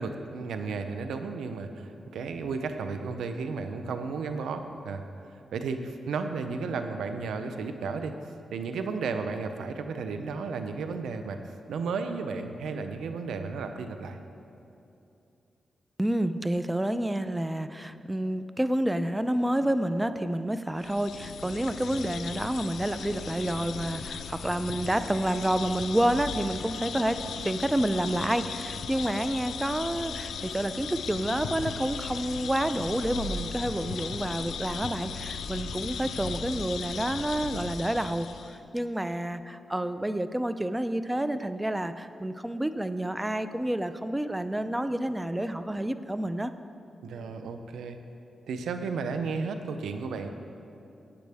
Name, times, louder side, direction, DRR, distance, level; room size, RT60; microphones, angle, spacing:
voice 1, 0.0-5.0 5.5-8.1 8.5-11.4 11.7-14.2 47.0-48.0 48.5-50.3, right 4 dB, 90° right, 7 dB, 0.7 m, -33 dB
voice 2, 16.0-27.2 27.4-46.5, right 1 dB, 15° right, 11 dB, 0.5 m, -29 dB
sound 1, 20.8-38.6, left 6 dB, 85° left, 0.5 m, -37 dB
15.5 x 9.1 x 3.5 m, 2.7 s
cardioid pair, 60°, 0 cm